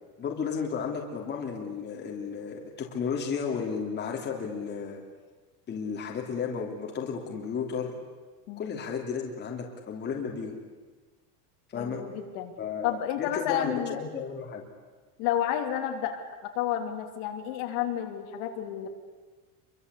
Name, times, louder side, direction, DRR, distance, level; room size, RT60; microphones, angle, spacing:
voice 1, 0.2-5.0 5.7-7.9 8.6-10.6 11.7-12.0 12.6-14.6, left 6 dB, 20° left, 0 dB, 3.3 m, -33 dB
voice 2, 11.7-12.5 12.8-14.0 15.2-16.2 16.5-18.9, left 10 dB, 55° left, 3 dB, 3.4 m, -30 dB
28.0 x 23.5 x 8.5 m, 1.3 s
cardioid pair, 170°, 47 cm